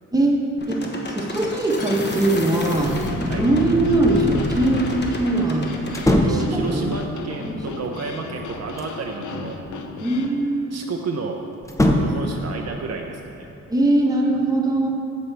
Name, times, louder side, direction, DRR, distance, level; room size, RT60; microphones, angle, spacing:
voice 1, 0.1-5.7 6.1-6.9 7.4-7.8 10.0-10.8 13.7-14.9, right 2 dB, 10° right, -1 dB, 1.1 m, -21 dB
sound 1, 0.6-6.1, left 1 dB, 35° left, 1.2 m, -29 dB
sound 2, 1.9-10.3, left 4 dB, 70° left, 0.8 m, -36 dB
sound 3, 5.9-6.6 8.2-9.0 11.6-12.3, left 1 dB, 10° left, 0.7 m, -21 dB
voice 2, 6.1-9.6 10.7-11.4 12.0-13.5, right 4 dB, 55° right, 2 dB, 0.6 m, -31 dB
15.0 x 5.3 x 3.4 m, 2.9 s
cardioid pair, 115°, 31 cm